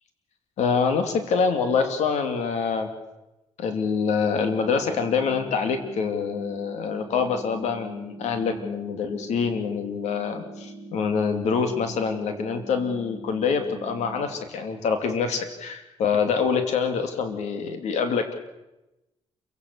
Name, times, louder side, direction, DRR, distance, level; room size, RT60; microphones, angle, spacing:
voice 1, 0.6-2.9 3.6-18.3, left 5 dB, 85° left, 7 dB, 2.8 m, -25 dB
sound 1, 4.2-14.2, right 2 dB, 40° right, 4.6 m, -42 dB
28.0 x 16.5 x 6.9 m, 0.97 s
cardioid pair, 115°, 11 cm